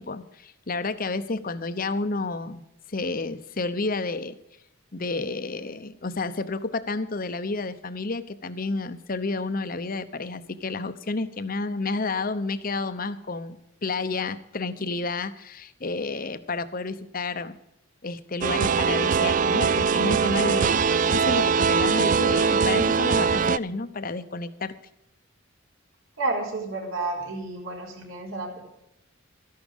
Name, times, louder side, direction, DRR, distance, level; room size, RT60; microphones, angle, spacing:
voice 1, 0.0-4.3 4.9-17.6 18.0-20.7 21.1-24.7, left 3 dB, 40° left, 12 dB, 0.8 m, -30 dB
sound 1, 18.4-23.6, right 5 dB, 35° right, 0.4 m, -22 dB
voice 2, 26.2-28.6, right 2 dB, 70° right, -1 dB, 4.3 m, -31 dB
14.0 x 11.5 x 5.3 m, 0.84 s
head